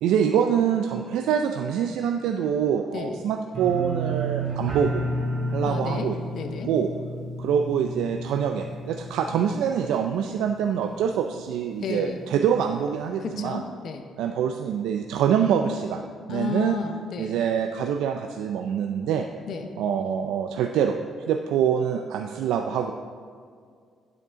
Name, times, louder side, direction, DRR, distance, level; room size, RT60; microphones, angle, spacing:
voice 1, 0.0-5.0 5.5-6.2 6.6-6.9 7.4-13.6 14.2-16.0 16.3-16.8 17.2-19.3 19.8-21.0 21.3-22.9, right 8 dB, 90° right, 5 dB, 0.4 m, -25 dB
sound 1, 3.5-10.4 10.7-11.2 11.6-11.7, right 1 dB, 65° right, 2.4 m, -31 dB
voice 2, 5.6-6.1 6.3-6.7 11.8-12.2 13.2-14.1 16.3-17.4 19.5-19.7, left 5 dB, 65° left, 6 dB, 0.8 m, -32 dB
9.2 x 7.8 x 3.7 m, 2.1 s
cardioid pair, 90°, 0 cm